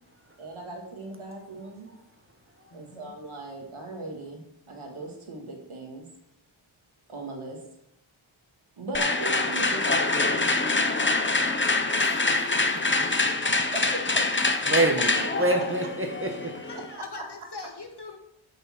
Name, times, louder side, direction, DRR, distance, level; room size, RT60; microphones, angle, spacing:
voice 1, 0.4-1.9 2.7-6.1 7.1-7.6 8.8-10.6 13.4-14.2 15.4-15.5 16.7-17.3, right 2 dB, 85° right, 2.1 m, -38 dB
voice 2, 2.7-3.1 14.2-14.6 15.0-15.2 15.5-15.7 16.6-18.2, left 3 dB, 55° left, 1.9 m, -41 dB
sound 1, 8.9-16.9, left 3 dB, 25° left, 0.8 m, -25 dB
voice 3, 11.9-12.4 14.7-16.6, right 2 dB, 25° right, 1.4 m, -27 dB
8.9 x 5.4 x 5.9 m
wide cardioid pair, 55°, 48 cm